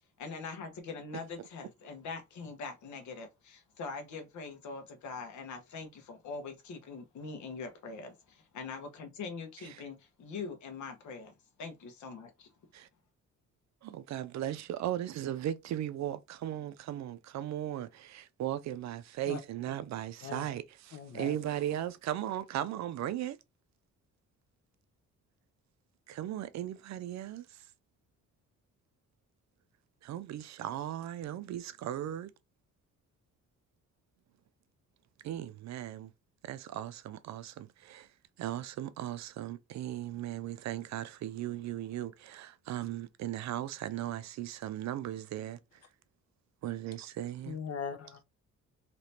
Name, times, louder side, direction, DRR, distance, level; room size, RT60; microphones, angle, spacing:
voice 1, 0.2-11.3 11.6-12.5, left 4 dB, 70° left, 1.2 m, -43 dB
voice 2, 13.8-23.4 26.1-27.5 30.0-32.3 35.2-36.1 36.4-38.1 38.4-45.6 46.6-47.6, right 12 dB, 65° right, 0.5 m, -37 dB
voice 3, 20.9-21.4 47.4-48.2, left 7 dB, 55° left, 0.8 m, -40 dB
3.3 x 2.9 x 2.8 m
cardioid pair, 90°, 30 cm